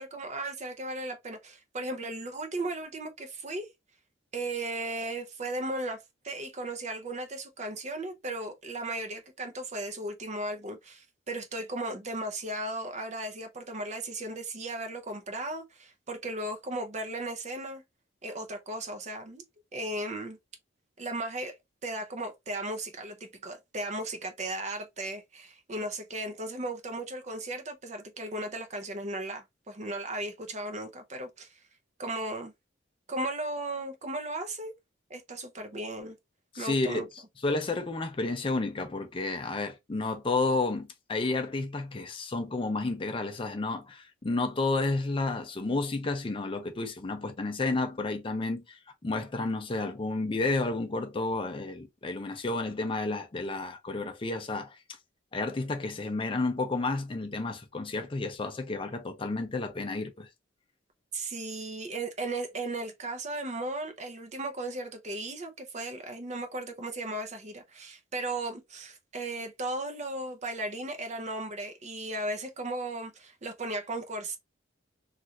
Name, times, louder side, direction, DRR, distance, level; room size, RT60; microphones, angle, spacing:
voice 1, 0.0-3.7 4.3-17.8 18.2-19.4 19.7-20.4 21.0-21.5 21.8-31.6 32.0-32.5 33.1-34.7 35.1-36.2 36.5-37.1 61.1-74.4, right 2 dB, 35° right, 0.6 m, -36 dB
voice 2, 36.5-37.0 37.4-54.8 55.3-60.3, left 3 dB, 25° left, 0.5 m, -31 dB
3.1 x 2.4 x 2.8 m
head